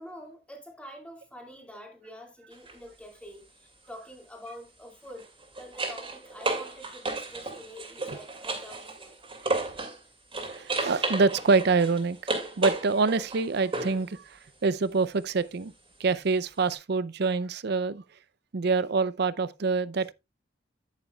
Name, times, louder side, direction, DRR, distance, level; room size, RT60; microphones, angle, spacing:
voice 1, 0.0-5.3 5.6-9.2, equal, 5° left, 2.2 m, -46 dB
sound 1, 2.5-2.7 5.0-10.0 10.3-14.1 16.7-16.8, right 3 dB, 30° right, 2.3 m, -33 dB
voice 2, 10.5-12.3 12.6-15.7 16.0-18.0 18.5-20.1, right 4 dB, 60° right, 0.5 m, -26 dB
9.8 x 9.4 x 2.3 m
head